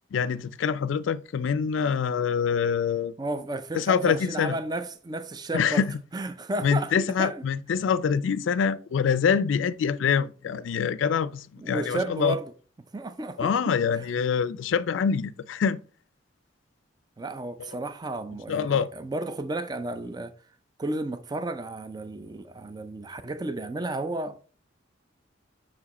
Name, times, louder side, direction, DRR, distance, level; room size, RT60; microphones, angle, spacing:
voice 1, 0.1-3.1 3.7-4.5 5.5-5.9 6.6-12.4 13.4-15.8 18.5-18.9, left 6 dB, 80° left, 0.4 m, -25 dB
voice 2, 3.2-5.8 6.1-7.4 11.6-12.4 12.9-14.0 17.2-20.3 20.8-24.5, right 2 dB, 20° right, 0.4 m, -33 dB
6.0 x 4.9 x 4.1 m
head